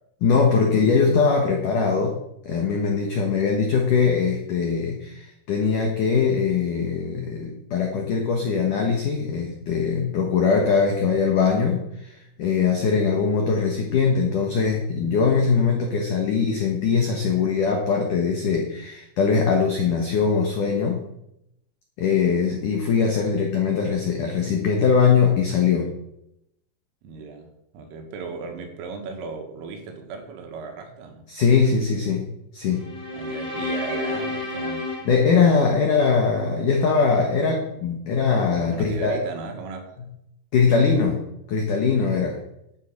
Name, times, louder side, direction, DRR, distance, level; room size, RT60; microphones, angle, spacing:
voice 1, 0.2-2.2 2.5-21.0 22.0-25.9 31.3-32.3 32.5-32.8 35.1-39.1 40.5-42.4, left 5 dB, 85° left, 1 dB, 1.8 m, -21 dB
voice 2, 22.1-22.4 27.0-31.3 33.1-35.0 38.7-39.9, right 4 dB, 75° right, 4 dB, 4.1 m, -36 dB
sound 1, 32.7-36.1, left 2 dB, 15° left, 2.9 m, -31 dB
12.0 x 7.6 x 5.4 m, 0.82 s
omnidirectional pair, 5.9 m